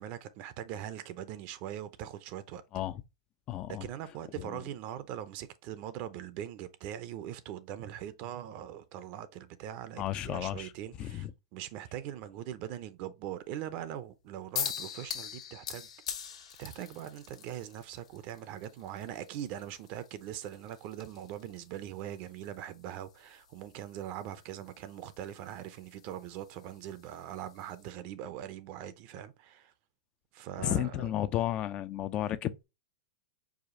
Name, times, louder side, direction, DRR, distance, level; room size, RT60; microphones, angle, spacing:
voice 1, 0.0-2.6 3.7-11.3 11.5-15.9 16.6-29.7 30.3-31.1, right 11 dB, 45° right, 0.5 m, -41 dB
voice 2, 3.5-3.9 4.4-4.5 10.0-10.7 11.0-11.3 30.6-32.6, left 12 dB, 30° left, 0.3 m, -33 dB
sound 1, 14.5-27.9, left 8 dB, 80° left, 1.3 m, -44 dB
4.9 x 2.4 x 3.7 m
hypercardioid pair, 135°, 3 cm